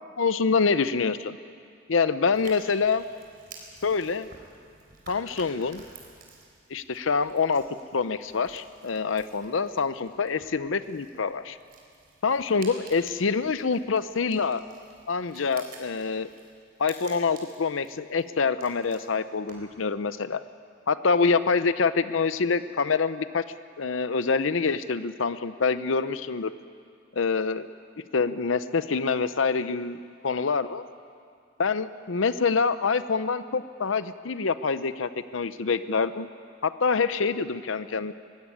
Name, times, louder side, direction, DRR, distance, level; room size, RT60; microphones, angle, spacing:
voice 1, 0.2-1.4 1.9-3.0 3.8-4.3 5.1-5.8 6.7-7.6 7.9-11.6 12.2-14.6 15.1-16.3 16.8-20.4 20.9-23.4 23.8-26.5 27.1-27.7 28.1-30.0 30.2-30.8 31.6-36.3 36.6-38.1, left 5 dB, 85° left, 13 dB, 0.7 m, -26 dB
sound 1, 2.3-19.8, right 3 dB, 50° right, 4.0 m, -51 dB
20.5 x 15.5 x 9.8 m, 2.2 s
head